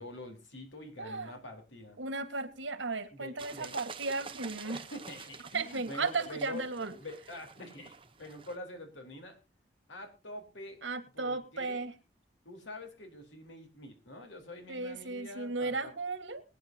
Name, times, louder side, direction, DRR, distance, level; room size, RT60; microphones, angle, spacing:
voice 1, 0.0-2.0 3.1-3.8 4.6-9.4 9.9-10.8 11.1-11.9 12.4-16.0, left 1 dB, 85° left, 4 dB, 4.0 m, -46 dB
voice 2, 1.0-1.4 2.0-4.8 5.5-7.0 10.8-11.9 14.7-16.4, right 3 dB, 90° right, 11 dB, 1.7 m, -35 dB
sound 1, 3.4-8.6, right 5 dB, 30° right, 1.0 m, -48 dB
22.5 x 9.6 x 2.8 m, 0.29 s
head